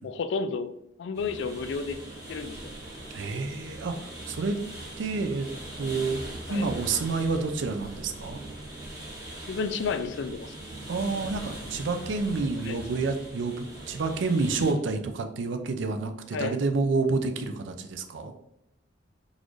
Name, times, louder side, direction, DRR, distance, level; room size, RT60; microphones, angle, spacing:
voice 1, 0.0-0.7 1.0-2.0 2.3-2.8 6.5-6.7 9.5-10.6 12.7-12.8 16.3-16.5, left 5 dB, 65° left, 10 dB, 0.3 m, -31 dB
sound 1, 1.1-14.7, right 1 dB, 20° right, 1.0 m, -41 dB
voice 2, 3.1-4.6 5.0-5.5 5.8-6.2 6.5-8.4 10.9-18.3, right 3 dB, 70° right, 7 dB, 0.4 m, -29 dB
3.9 x 2.5 x 3.1 m, 0.78 s
head